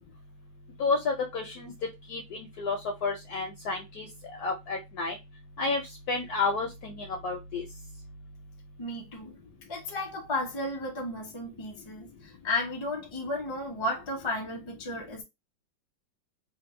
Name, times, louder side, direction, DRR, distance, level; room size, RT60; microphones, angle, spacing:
voice 1, 0.8-1.7 2.1-5.2 5.6-5.8 6.1-7.6, left 4 dB, 65° left, 1.0 m, -31 dB
voice 2, 8.8-9.3 9.7-15.2, left 1 dB, 25° left, 0.6 m, -33 dB
3.4 x 2.0 x 3.1 m
omnidirectional pair, 2.1 m